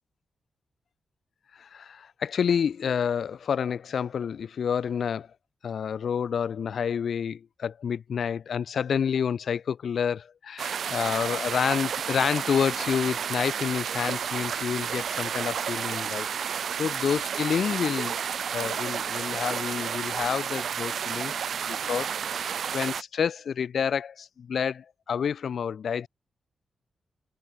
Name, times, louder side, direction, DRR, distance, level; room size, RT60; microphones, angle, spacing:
voice 1, 1.5-5.3 5.6-18.2 18.5-21.3 21.7-26.1, left 7 dB, 60° left, 0.7 m, -29 dB
sound 1, 10.6-23.0, right 7 dB, 65° right, 0.8 m, -31 dB
wide cardioid pair, 170°, 0 cm